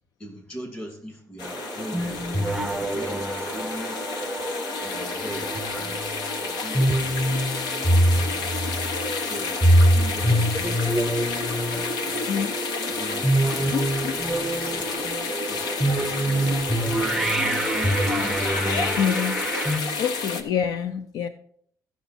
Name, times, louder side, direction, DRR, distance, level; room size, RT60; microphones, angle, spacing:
voice 1, 0.2-2.4 2.9-4.0 4.8-6.0 6.4-7.4 9.1-11.1 11.5-12.2 12.9-15.1 15.5-17.8, equal, 20° left, 2 dB, 2.4 m, -41 dB
sound 1, 1.4-20.4, left 4 dB, 85° left, 1.1 m, -30 dB
sound 2, 1.4-19.8, right 1 dB, 5° right, 0.6 m, -25 dB
voice 2, 13.7-14.2 19.0-19.4 20.0-21.3, left 8 dB, 65° left, 11 dB, 0.5 m, -27 dB
14.5 x 6.1 x 4.2 m, 0.64 s
cardioid pair, 165°, 7 cm